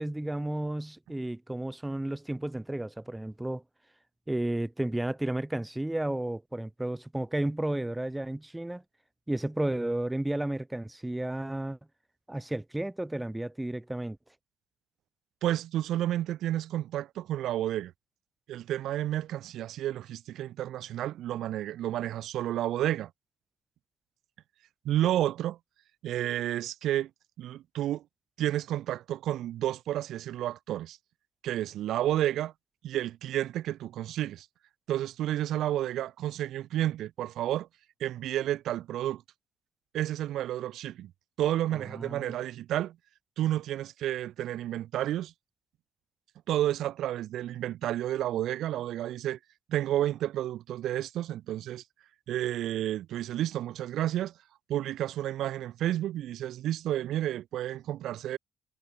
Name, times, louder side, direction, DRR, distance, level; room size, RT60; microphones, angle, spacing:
voice 1, 0.0-3.6 4.3-8.8 9.3-11.8 12.3-14.2 41.9-42.4, right 1 dB, 5° right, 1.0 m, -32 dB
voice 2, 15.4-17.9 18.5-23.1 24.8-25.6 26.0-27.1 27.4-28.0 28.4-31.0 31.4-32.5 32.8-34.5 34.9-37.7 38.0-39.2 39.9-41.1 41.4-43.0 43.4-45.3 46.5-49.4 49.7-51.8 52.3-54.3 54.7-58.4, right 13 dB, 65° right, 1.0 m, -31 dB
cardioid pair, 165°, 0 cm